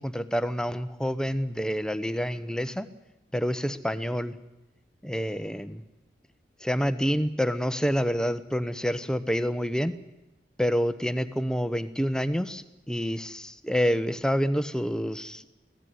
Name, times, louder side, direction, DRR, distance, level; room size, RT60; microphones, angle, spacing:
voice 1, 0.0-2.9 3.3-4.4 5.0-5.8 6.6-9.9 10.6-15.6, equal, 5° left, 12 dB, 0.9 m, -28 dB
24.0 x 17.0 x 9.6 m, 1.0 s
head